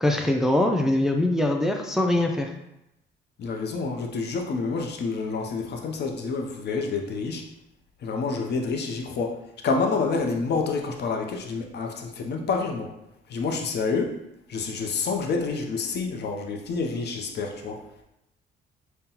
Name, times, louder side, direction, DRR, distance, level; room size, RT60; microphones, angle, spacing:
voice 1, 0.0-2.5, left 1 dB, ahead, 2 dB, 0.4 m, -22 dB
voice 2, 3.4-7.4 8.0-12.9 13.3-14.1 14.5-17.8, left 4 dB, 55° left, 2 dB, 0.6 m, -28 dB
5.3 x 2.2 x 2.9 m, 0.85 s
cardioid pair, 90°, 20 cm